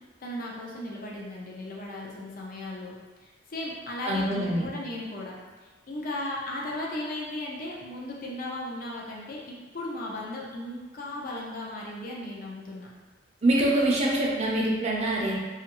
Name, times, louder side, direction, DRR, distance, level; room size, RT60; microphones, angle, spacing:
voice 1, 0.2-5.4 5.9-12.9, left 1 dB, 50° left, -3 dB, 0.5 m, -36 dB
voice 2, 4.0-4.7 13.4-15.4, right 1 dB, 35° right, -3 dB, 0.5 m, -24 dB
3.0 x 2.4 x 2.9 m, 1.4 s
head